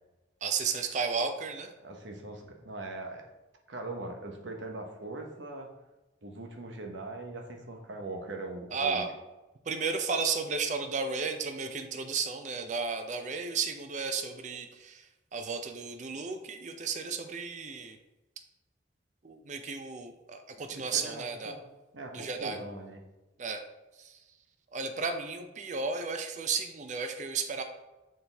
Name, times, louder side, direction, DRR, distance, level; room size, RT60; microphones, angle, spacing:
voice 1, 0.4-1.7 8.7-9.1 9.7-15.1 15.3-18.0 19.2-21.5 22.1-22.6 23.4-23.6 24.0-24.2 24.7-27.6, right 5 dB, 40° right, 6 dB, 0.5 m, -33 dB
voice 2, 1.8-3.2 3.7-5.7 6.2-9.0 20.7-21.6 21.9-23.0, right 2 dB, 75° right, 3 dB, 1.0 m, -41 dB
6.6 x 4.2 x 3.4 m, 1.1 s
head